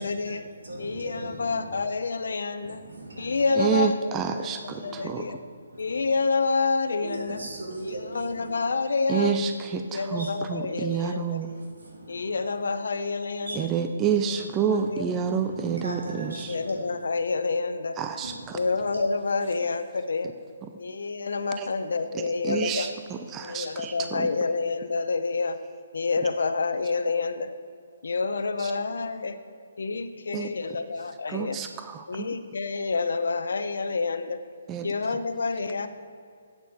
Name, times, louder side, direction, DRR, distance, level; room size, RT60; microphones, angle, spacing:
voice 1, 0.0-0.4 0.8-2.8 3.2-4.1 4.4-5.4 5.8-7.4 7.9-9.3 9.9-11.4 12.1-13.7 14.8-15.0 16.5-18.0 18.5-20.3 20.8-22.9 23.4-25.6 25.9-27.5 28.0-29.4 29.8-31.6 32.1-34.4 34.8-35.9, left 4 dB, 75° left, 10 dB, 0.8 m, -28 dB
voice 2, 0.6-1.8 2.6-3.6 4.7-5.3 5.7-6.1 7.0-8.5 9.9-10.3 11.4-12.5 13.4-13.6 14.3-14.4 14.8-15.0 15.3-16.9 18.2-19.0, right 1 dB, 85° right, -1 dB, 2.8 m, -40 dB
voice 3, 3.5-5.4 9.1-11.5 13.6-16.6 18.0-18.6 21.6-21.7 22.1-24.3 28.6-28.7 30.3-30.5 31.3-32.3 34.7-34.9, right 7 dB, 15° right, 7 dB, 0.4 m, -29 dB
8.4 x 7.7 x 7.0 m, 2.3 s
hypercardioid pair, 170°, 0 cm